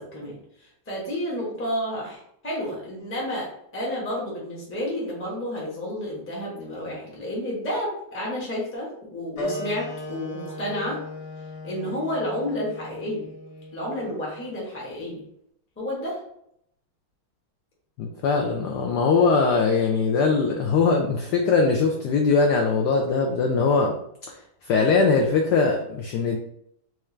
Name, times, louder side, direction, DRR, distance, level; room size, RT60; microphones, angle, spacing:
voice 1, 0.0-11.0 11.6-13.3 13.7-15.2 15.8-16.2, left 1 dB, 15° left, -4 dB, 0.5 m, -31 dB
sound 1, 9.4-14.5, left 1 dB, 55° left, 1.0 m, -36 dB
voice 2, 18.0-23.9 24.3-24.4 24.7-26.4, left 4 dB, 80° left, 2 dB, 0.9 m, -21 dB
4.4 x 2.4 x 3.1 m, 0.73 s
omnidirectional pair, 2.3 m